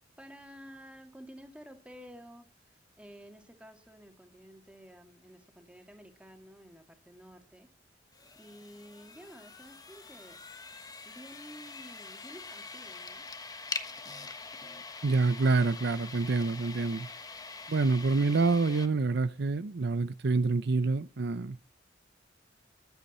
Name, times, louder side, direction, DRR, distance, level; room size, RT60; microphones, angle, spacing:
voice 1, 0.2-7.7 8.4-10.4 11.0-13.3, equal, 5° right, 2.3 m, -51 dB
sound 1, 8.1-18.9, left 4 dB, 20° left, 1.2 m, -44 dB
voice 2, 15.0-17.1 17.7-21.6, right 3 dB, 65° right, 0.6 m, -27 dB
22.0 x 8.2 x 4.3 m
head